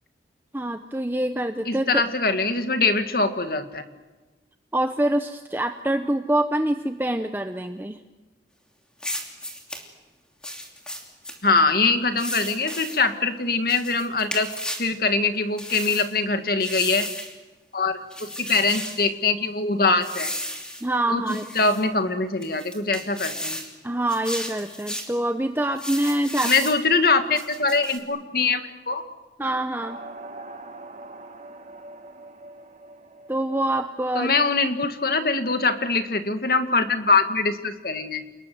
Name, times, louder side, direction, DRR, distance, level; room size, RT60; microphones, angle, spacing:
voice 1, 0.5-2.0 4.7-8.0 20.8-21.5 23.8-26.5 29.4-30.0 33.3-34.4, right 1 dB, 10° right, 7 dB, 0.8 m, -25 dB
voice 2, 1.7-3.8 11.4-14.5 14.8-17.1 17.7-20.3 21.1-21.2 21.6-23.6 26.4-29.0 34.2-38.2, left 3 dB, 55° left, 8 dB, 2.0 m, -23 dB
sound 1, 9.0-9.8 10.4-11.4 12.2-13.0 13.7-14.9 15.6-16.1 16.6-17.3 18.1-19.0 20.0-20.8 21.3-21.8 22.4-23.7 24.1-25.1 25.8-26.8 27.3-28.0, left 1 dB, 5° left, 2.9 m, -33 dB
sound 2, 29.8-34.8, right 2 dB, 40° right, 2.0 m, -43 dB
29.0 x 20.5 x 7.9 m, 1.2 s
head